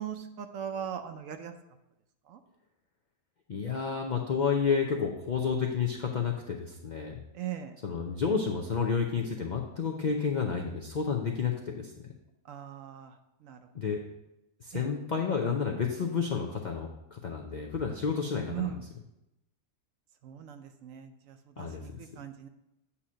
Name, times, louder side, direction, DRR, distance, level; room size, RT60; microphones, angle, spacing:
voice 1, 0.0-1.5 2.3-2.4 7.3-7.8 12.4-13.6 14.7-14.9 18.5-18.8 20.2-22.5, right 9 dB, 70° right, 8 dB, 0.9 m, -39 dB
voice 2, 3.5-7.2 7.8-11.9 13.7-14.0 14.6-18.7 21.6-22.0, left 6 dB, 70° left, 1 dB, 0.4 m, -30 dB
8.4 x 2.8 x 6.1 m, 0.90 s
omnidirectional pair, 1.6 m